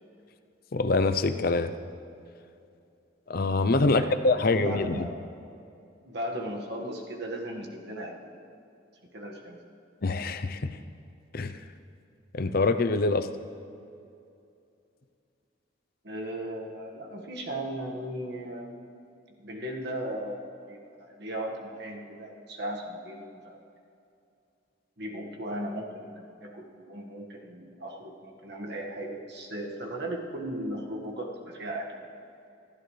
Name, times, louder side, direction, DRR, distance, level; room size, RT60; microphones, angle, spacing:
voice 1, 0.7-1.7 3.3-5.1 10.0-10.8 11.3-11.5 12.3-13.3, left 3 dB, 50° left, 10 dB, 0.6 m, -25 dB
voice 2, 3.8-5.3 6.0-8.1 9.1-9.6 16.0-18.8 19.4-23.7 25.0-31.9, right 1 dB, 55° right, 0 dB, 1.8 m, -37 dB
26.5 x 12.5 x 3.3 m, 2.6 s
head